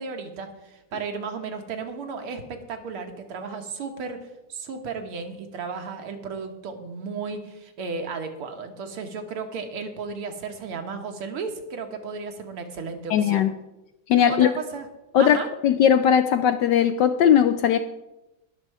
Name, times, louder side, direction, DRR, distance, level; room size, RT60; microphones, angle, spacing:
voice 1, 0.0-4.2 4.5-13.4 14.3-14.9 15.2-15.5, right 5 dB, 85° right, 5 dB, 2.3 m, -34 dB
voice 2, 13.1-13.5 14.1-14.5 15.1-17.8, left 9 dB, 75° left, 10 dB, 1.0 m, -19 dB
19.5 x 6.6 x 4.8 m, 0.96 s
omnidirectional pair, 2.4 m